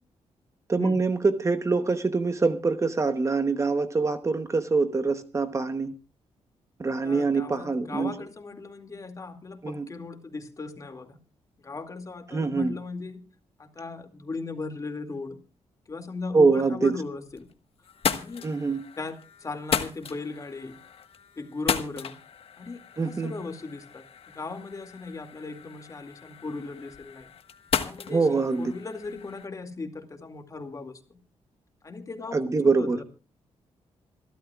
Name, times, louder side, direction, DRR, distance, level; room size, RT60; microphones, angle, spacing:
voice 1, 0.7-5.9 6.8-8.1 9.6-9.9 12.3-12.7 16.3-16.9 18.4-18.8 23.0-23.3 28.1-28.7 32.3-33.0, right 4 dB, 25° right, 9 dB, 1.0 m, -24 dB
voice 2, 7.0-11.2 11.6-13.2 13.6-15.4 15.9-17.5 18.1-18.5 19.0-19.2 19.4-20.8 21.4-22.2 22.6-24.1 24.3-27.3 27.7-31.2 31.8-33.0, left 3 dB, 30° left, 6 dB, 2.3 m, -37 dB
sound 1, 17.0-17.5 17.8-29.5, left 7 dB, 60° left, 1.4 m, -35 dB
27.0 x 12.5 x 2.4 m, 0.33 s
wide cardioid pair, 135°, 11 cm